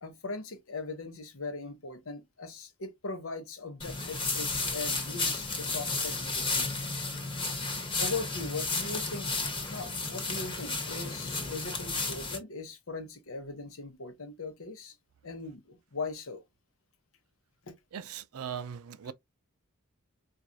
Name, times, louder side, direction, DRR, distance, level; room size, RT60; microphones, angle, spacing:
voice 1, 0.0-6.8 8.0-15.0 15.2-16.4 17.7-17.8, left 3 dB, 65° left, 0.9 m, -40 dB
walking in the grass, 3.8-12.4, left 3 dB, 25° left, 1.2 m, -33 dB
voice 2, 17.9-19.1, right 8 dB, 80° right, 0.5 m, -39 dB
4.6 x 2.5 x 2.6 m
head